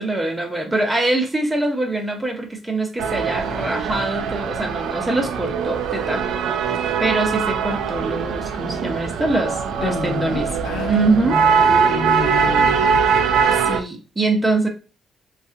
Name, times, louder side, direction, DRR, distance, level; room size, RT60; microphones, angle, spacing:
voice 1, 0.0-6.2 7.0-10.5 10.9-11.4 13.5-14.7, right 2 dB, 15° right, 0.7 m, -23 dB
sound 1, 3.0-13.8, right 6 dB, 80° right, 0.3 m, -21 dB
voice 2, 9.8-11.6 11.9-13.0, left 4 dB, 70° left, 0.5 m, -29 dB
2.7 x 2.4 x 2.4 m
cardioid pair, 90°, 0 cm